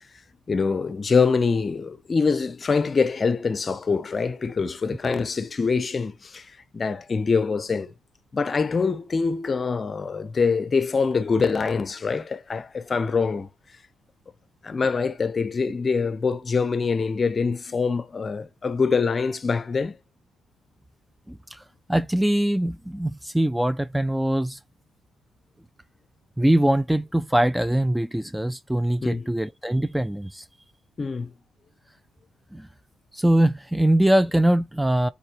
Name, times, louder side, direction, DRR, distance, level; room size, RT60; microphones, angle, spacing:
voice 1, 0.5-6.5 6.7-7.9 8.3-13.5 14.6-20.0 29.0-29.3 31.0-31.3, left 5 dB, 35° left, 0.6 m, -24 dB
voice 2, 21.3-21.6 21.9-24.6 26.4-30.5 32.5-32.7 33.1-35.1, right 1 dB, 5° right, 0.3 m, -22 dB
12.0 x 4.1 x 2.9 m
cardioid pair, 90°, 0 cm